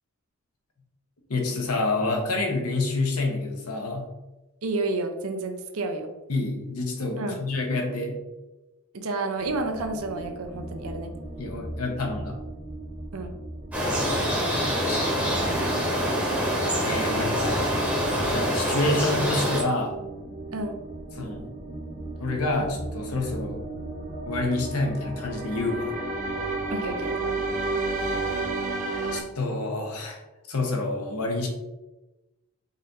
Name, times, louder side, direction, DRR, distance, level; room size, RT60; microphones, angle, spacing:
voice 1, 1.3-4.1 6.3-8.2 11.4-12.4 14.9-15.6 16.8-17.7 18.3-20.0 21.1-21.5 22.2-23.6 24.3-25.9 28.2-28.4 29.1-30.2 30.5-31.5, left 2 dB, 85° left, 1 dB, 0.9 m, -28 dB
voice 2, 4.6-6.1 7.2-7.4 8.9-11.1 13.1-13.3 20.5-20.8 26.7-27.2, right 2 dB, 75° right, 6 dB, 0.6 m, -30 dB
sound 1, 9.4-29.2, right 2 dB, 35° right, 0.9 m, -34 dB
sound 2, 13.7-19.6, equal, 5° right, 0.9 m, -25 dB
4.1 x 2.5 x 4.0 m, 1.0 s
head